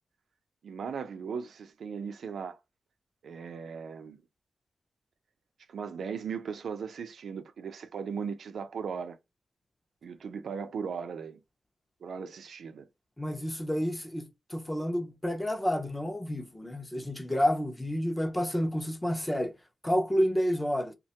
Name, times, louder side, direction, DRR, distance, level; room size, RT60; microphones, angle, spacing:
voice 1, 0.6-2.6 3.2-4.2 5.7-9.2 10.0-11.4 12.0-12.9, right 6 dB, 85° right, 0.4 m, -37 dB
voice 2, 13.2-19.5 19.8-20.9, equal, 10° left, 0.5 m, -29 dB
3.1 x 2.2 x 2.7 m
wide cardioid pair, 165°, 0 cm